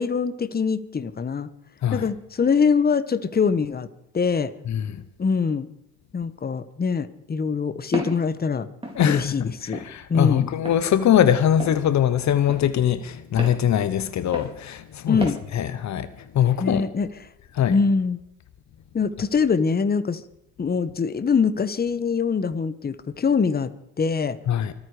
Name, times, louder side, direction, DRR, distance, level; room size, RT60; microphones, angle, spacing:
voice 1, 0.0-1.5 1.9-3.9 4.1-4.5 5.2-5.7 6.1-8.7 9.0-9.8 10.1-10.5 15.1-15.4 16.6-17.1 17.7-18.2 18.9-20.2 20.6-24.4, left 5 dB, 30° left, 1.3 m, -23 dB
voice 2, 4.7-5.0 8.9-15.3 15.5-16.1 16.3-16.9 17.5-17.8 24.5-24.7, left 10 dB, 65° left, 1.1 m, -22 dB
Walk footsteps, 7.9-8.2 8.8-9.0 9.7-9.9 10.6-10.8 11.6-11.8 12.5-12.6 13.4-13.6 14.3-14.5 15.2-15.4, right 1 dB, 20° right, 4.7 m, -32 dB
25.5 x 9.7 x 5.0 m
cardioid pair, 90°, 30 cm